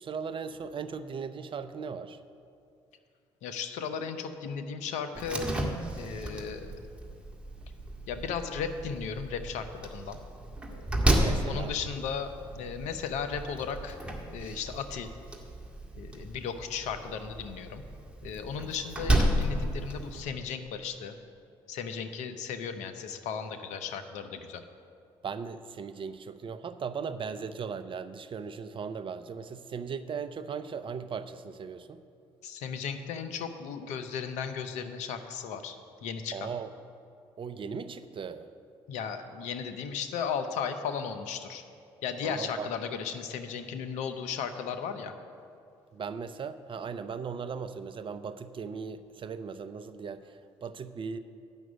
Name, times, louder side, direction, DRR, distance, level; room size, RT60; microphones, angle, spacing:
voice 1, 0.0-2.2 11.2-11.7 25.2-32.0 36.3-36.7 37.4-38.5 42.2-42.7 45.9-51.2, right 6 dB, 45° right, 11 dB, 0.6 m, -38 dB
voice 2, 3.4-5.5 6.0-6.8 8.1-10.2 10.6-10.8 11.4-14.0 14.3-15.1 16.0-17.8 18.2-21.2 21.7-24.6 32.4-36.5 38.9-41.6 42.0-45.1, left 6 dB, 70° left, 8 dB, 0.8 m, -35 dB
Slam, 5.1-20.2, right 1 dB, 10° right, 1.8 m, -33 dB
9.0 x 6.1 x 8.0 m, 2.5 s
hypercardioid pair, 55°, 12 cm